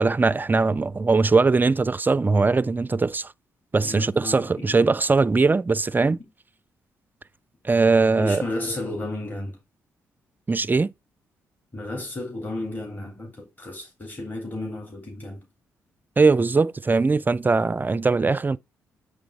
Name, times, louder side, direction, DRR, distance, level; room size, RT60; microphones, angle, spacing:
voice 1, 0.0-3.3 3.7-6.2 7.6-8.4 10.5-10.9 16.2-18.6, right 4 dB, 25° right, 0.4 m, -20 dB
voice 2, 3.8-4.9 8.2-9.6 11.7-15.5 18.1-18.2, left 2 dB, 25° left, 3.1 m, -33 dB
8.9 x 3.4 x 5.1 m
hypercardioid pair, 45°, 7 cm